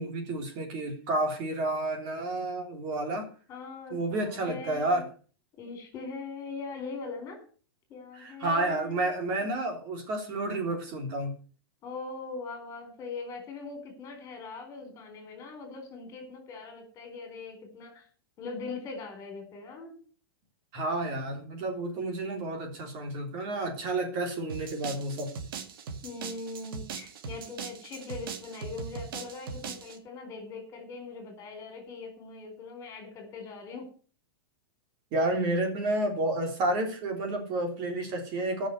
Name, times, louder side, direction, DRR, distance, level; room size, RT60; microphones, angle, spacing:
voice 1, 0.0-3.3 3.9-5.1 8.2-11.3 20.7-25.3 35.1-38.7, right 2 dB, 35° right, 4 dB, 3.4 m, -30 dB
voice 2, 3.5-5.0 5.6-7.4 7.9-9.0 9.4-9.5 11.8-18.1 18.4-19.9 26.0-33.9, left 4 dB, 25° left, 5 dB, 4.4 m, -41 dB
sound 1, 24.5-30.0, right 6 dB, 70° right, 2.2 m, -40 dB
14.0 x 6.5 x 8.0 m, 0.40 s
supercardioid pair, 155°, 12 cm